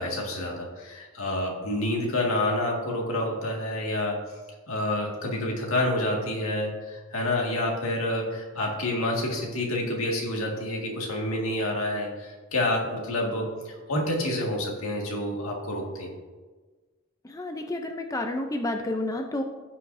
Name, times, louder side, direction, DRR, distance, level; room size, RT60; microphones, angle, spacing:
voice 1, 0.0-4.2 4.7-16.1, left 1 dB, 85° left, -1 dB, 2.0 m, -28 dB
voice 2, 17.3-19.4, left 1 dB, 15° left, 4 dB, 0.5 m, -30 dB
16.0 x 5.8 x 2.7 m, 1.4 s
head